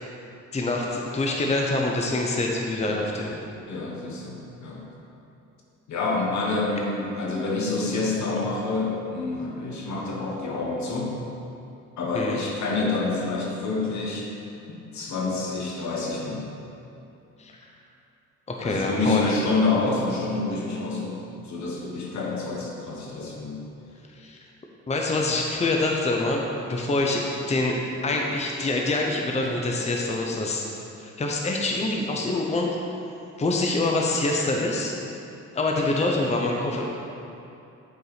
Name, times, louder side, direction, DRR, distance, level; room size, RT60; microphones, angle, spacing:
voice 1, 0.5-3.3 12.1-12.4 17.4-17.5 18.5-19.2 24.1-24.4 24.9-27.7 28.0-30.7 31.0-32.7 33.4-34.9 35.5-36.9, left 2 dB, 20° left, 0 dB, 0.8 m, -25 dB
voice 2, 3.7-4.8 5.9-11.1 12.0-14.3 14.7-16.4 18.6-21.2 21.4-23.6, left 3 dB, 70° left, -2 dB, 1.5 m, -27 dB
8.1 x 4.6 x 4.9 m, 2.7 s
cardioid pair, 90°, 30 cm